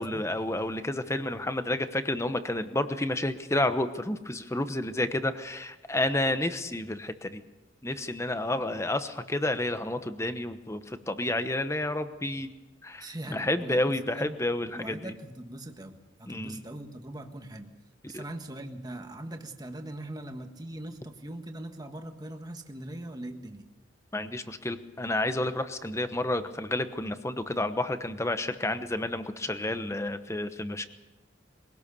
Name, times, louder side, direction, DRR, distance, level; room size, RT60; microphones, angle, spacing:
voice 1, 0.0-7.4 7.8-12.5 12.8-15.1 16.3-16.6 18.1-18.2 24.1-30.9, left 1 dB, 15° left, 10 dB, 1.0 m, -30 dB
voice 2, 13.0-14.4 14.7-17.7 18.1-23.7, right 1 dB, 20° right, 5 dB, 1.5 m, -41 dB
23.0 x 18.0 x 6.9 m, 1.1 s
head